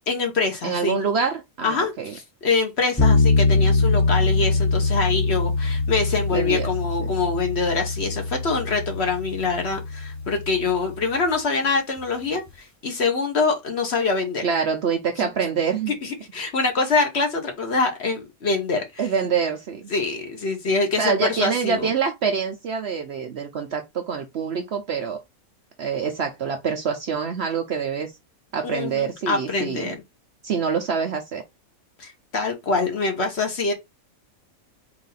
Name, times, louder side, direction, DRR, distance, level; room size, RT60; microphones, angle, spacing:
voice 1, 0.1-1.0 1.6-14.4 15.2-15.3 15.9-19.0 19.9-21.9 28.6-29.9 32.0-33.7, left 4 dB, 50° left, 1.2 m, -25 dB
voice 2, 0.6-2.1 6.3-6.7 7.0-7.1 14.4-15.9 19.0-19.9 21.0-25.2 25.8-28.1 28.5-29.9 30.4-31.4, right 6 dB, 60° right, 0.8 m, -25 dB
sound 1, 3.0-11.1, left 3 dB, 15° left, 0.6 m, -23 dB
4.0 x 2.6 x 3.9 m
omnidirectional pair, 1.5 m